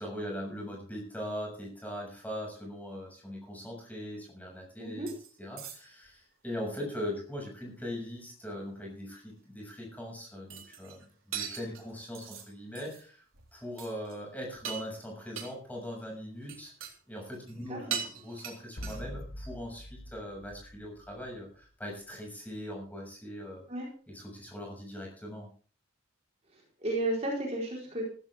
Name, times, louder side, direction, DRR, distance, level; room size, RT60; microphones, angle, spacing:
voice 1, 0.0-5.1 5.4-13.2 13.5-16.7 17.1-23.6 24.1-25.5, equal, 10° left, -1 dB, 6.8 m, -40 dB
voice 2, 4.8-5.1 17.7-17.9 23.7-23.9 26.5-28.0, right 1 dB, 30° right, -1 dB, 4.4 m, -33 dB
sound 1, 5.1-5.3 5.6-6.1 10.5-11.1 11.3-12.5 12.8-13.0 13.3-13.5 13.8-14.2 14.5-15.0 15.4-15.5 16.4-16.9 17.2-17.6 17.9-19.2, right 8 dB, 90° right, 3.7 m, -40 dB
sound 2, 18.8-21.6, equal, 50° left, 1.3 m, -44 dB
15.0 x 15.0 x 3.7 m, 0.41 s
head